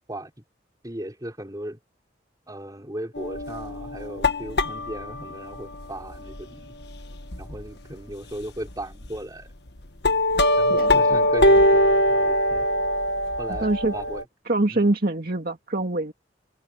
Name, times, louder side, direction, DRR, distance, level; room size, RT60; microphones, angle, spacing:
voice 1, 0.8-1.8 2.5-6.7 7.4-9.5 10.6-12.7 13.4-14.2 14.7-14.9, right 1 dB, 20° right, 5.8 m, -37 dB
sound 1, 3.1-7.7 8.1-8.2 8.6-9.2 9.7-14.2, left 1 dB, 65° left, 1.5 m, -22 dB
voice 2, 13.6-13.9 14.5-16.1, right 2 dB, 55° right, 2.4 m, -24 dB
head